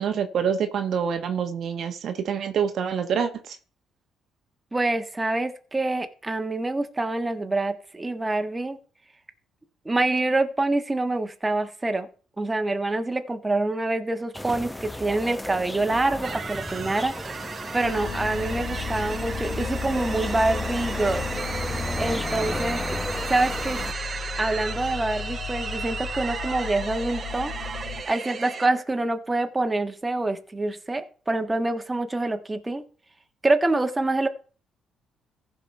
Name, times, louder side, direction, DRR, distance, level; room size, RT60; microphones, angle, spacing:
voice 1, 0.0-3.6, right 7 dB, 65° right, 7 dB, 1.1 m, -26 dB
voice 2, 4.7-8.8 9.8-12.1 12.4-17.1 17.7-21.3 22.0-22.8 23.3-23.8 24.4-27.5 28.1-32.8 33.4-34.3, right 2 dB, 20° right, 7 dB, 1.4 m, -26 dB
sound 1, 14.3-23.9, left 1 dB, 5° left, 0.9 m, -33 dB
sound 2, 16.2-28.7, right 5 dB, 45° right, 0.8 m, -35 dB
sound 3, 17.8-28.0, left 7 dB, 75° left, 1.4 m, -36 dB
15.0 x 5.2 x 4.2 m, 0.39 s
supercardioid pair, 60°, 0 cm